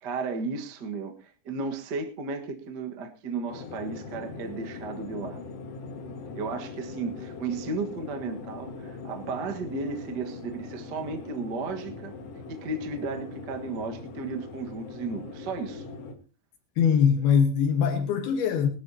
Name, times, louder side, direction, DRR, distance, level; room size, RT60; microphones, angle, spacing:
voice 1, 0.0-5.4 6.3-12.1 12.5-15.8, right 4 dB, 60° right, 1.0 m, -34 dB
sound 1, 3.5-16.1, left 4 dB, 50° left, 2.2 m, -41 dB
voice 2, 16.8-18.7, left 7 dB, 80° left, 3.2 m, -22 dB
21.5 x 12.0 x 2.8 m
omnidirectional pair, 4.5 m